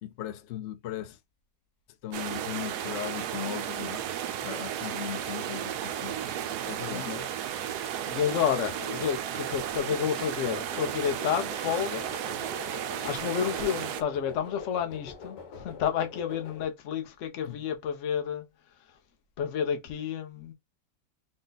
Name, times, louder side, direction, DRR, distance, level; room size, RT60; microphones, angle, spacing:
voice 1, 0.0-1.2 2.0-4.0 4.4-6.2 6.6-7.2 17.4-17.6, left 11 dB, 70° left, 0.6 m, -38 dB
sound 1, 2.1-14.0, right 10 dB, 75° right, 1.1 m, -34 dB
voice 2, 6.8-7.3 7.7-12.0 13.0-18.4 19.4-20.5, left 8 dB, 55° left, 1.0 m, -30 dB
sound 2, 9.8-16.7, left 5 dB, 90° left, 1.7 m, -45 dB
3.9 x 2.3 x 3.9 m
omnidirectional pair, 1.8 m